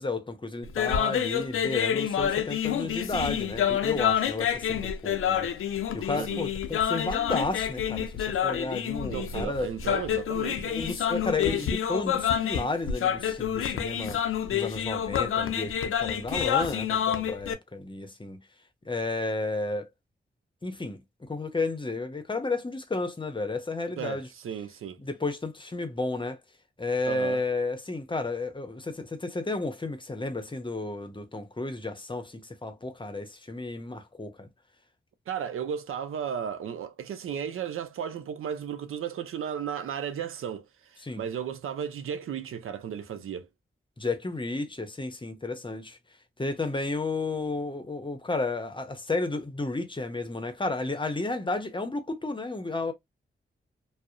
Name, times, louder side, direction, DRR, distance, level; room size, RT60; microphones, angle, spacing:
voice 1, 0.0-5.7 5.9-9.7 10.6-18.4 18.9-19.9 20.6-24.3 25.0-26.4 26.8-34.5 41.0-41.2 44.0-46.0 46.4-52.9, left 3 dB, 25° left, 0.7 m, -32 dB
sound 1, 0.6-17.5, left 9 dB, 85° left, 0.4 m, -28 dB
voice 2, 6.1-6.5 9.1-10.8 24.0-25.0 27.1-27.4 35.3-43.5, right 8 dB, 90° right, 0.5 m, -34 dB
2.7 x 2.0 x 2.4 m
cardioid pair, 55°, 21 cm